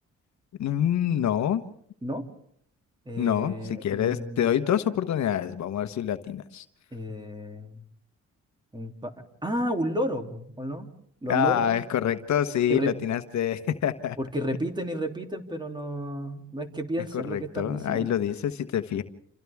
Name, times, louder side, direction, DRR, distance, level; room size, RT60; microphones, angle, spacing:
voice 1, 0.6-1.6 3.2-6.6 11.3-14.2 17.1-19.0, left 10 dB, 65° left, 9 dB, 1.2 m, -26 dB
voice 2, 3.0-4.5 6.9-7.8 8.7-9.1 9.4-10.9 11.2-11.7 12.7-12.9 14.2-18.2, equal, 15° right, 4 dB, 3.1 m, -32 dB
29.5 x 27.5 x 3.6 m, 0.66 s
cardioid pair, 90°, 30 cm